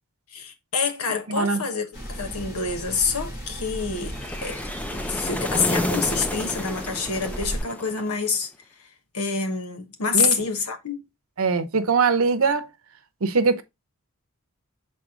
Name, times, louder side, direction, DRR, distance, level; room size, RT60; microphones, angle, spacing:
voice 1, 0.3-4.2 4.4-4.6 4.9-8.5 9.1-11.0, left 5 dB, 80° left, 1.2 m, -27 dB
voice 2, 1.3-1.6 10.1-10.4 11.4-12.7 13.2-13.6, right 4 dB, 65° right, 0.8 m, -21 dB
sound 1, 1.9-7.6, equal, 55° left, 4.3 m, -36 dB
sound 2, 4.0-8.3, left 1 dB, 5° left, 0.5 m, -30 dB
6.2 x 4.2 x 3.7 m
head